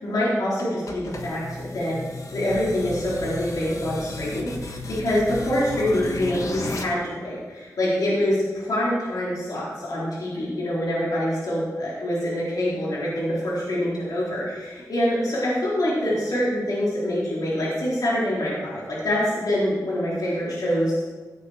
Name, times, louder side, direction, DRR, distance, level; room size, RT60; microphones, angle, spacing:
voice 1, 0.0-2.0 2.3-20.9, left 1 dB, 75° left, -7 dB, 4.0 m, -25 dB
sound 1, 0.6-6.8, left 3 dB, 55° left, 1.4 m, -34 dB
16.0 x 8.4 x 4.3 m, 1.4 s
wide cardioid pair, 75°, 7 cm